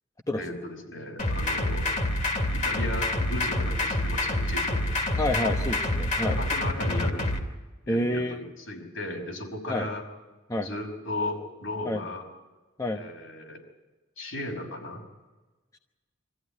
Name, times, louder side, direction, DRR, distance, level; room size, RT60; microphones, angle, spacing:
voice 1, 0.4-1.9 2.5-4.8 5.4-5.5 6.2-7.3 7.9-10.0 10.6-12.3 12.9-13.6 14.2-15.0, left 1 dB, 70° left, 1 dB, 5.4 m, -35 dB
sound 1, 1.2-7.4, left 1 dB, 40° left, 2.5 m, -27 dB
voice 2, 5.2-6.4 7.9-8.4 9.7-9.9 10.5-10.7 11.8-12.0 12.8-13.0, left 1 dB, 15° left, 4 dB, 0.9 m, -28 dB
25.0 x 15.0 x 9.9 m, 1.2 s
head